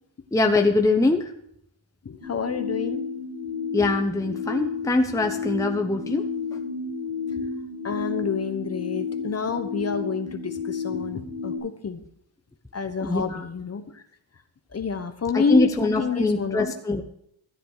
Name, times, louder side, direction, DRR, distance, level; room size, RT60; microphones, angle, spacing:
voice 1, 0.3-1.3 3.7-6.3 13.0-13.4 15.3-17.0, left 2 dB, 5° left, 4 dB, 0.8 m, -23 dB
voice 2, 2.0-3.0 7.8-12.0 12.7-14.0 14.7-16.7, left 5 dB, 30° left, 9 dB, 1.0 m, -29 dB
sound 1, 2.2-11.6, left 5 dB, 85° right, 5.8 m, -31 dB
13.5 x 9.7 x 4.8 m, 0.73 s
cardioid pair, 120°, 49 cm